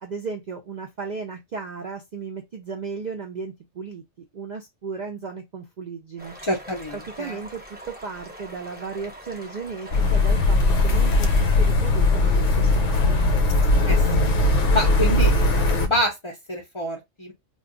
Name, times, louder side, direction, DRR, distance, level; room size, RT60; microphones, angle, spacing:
voice 1, 0.0-4.0 4.3-6.3 7.2-13.2, right 5 dB, 80° right, 0.4 m, -35 dB
sound 1, 6.2-11.7, equal, 10° right, 0.6 m, -43 dB
voice 2, 6.4-7.4 13.8-14.3 14.7-17.3, left 1 dB, 40° left, 0.4 m, -27 dB
sound 2, 9.9-15.9, left 2 dB, 70° left, 0.9 m, -19 dB
2.3 x 2.2 x 3.6 m
omnidirectional pair, 1.3 m